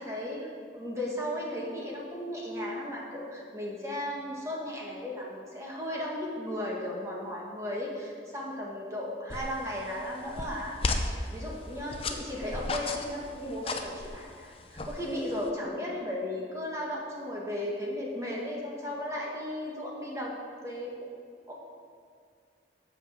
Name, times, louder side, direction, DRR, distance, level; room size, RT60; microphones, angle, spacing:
voice 1, 0.0-10.7 11.0-20.4 20.6-21.1 21.5-21.6, left 1 dB, 15° right, -3 dB, 1.7 m, -35 dB
sound 1, 9.3-15.5, left 2 dB, 30° left, 0.6 m, -36 dB
8.2 x 6.4 x 7.6 m, 2.1 s
head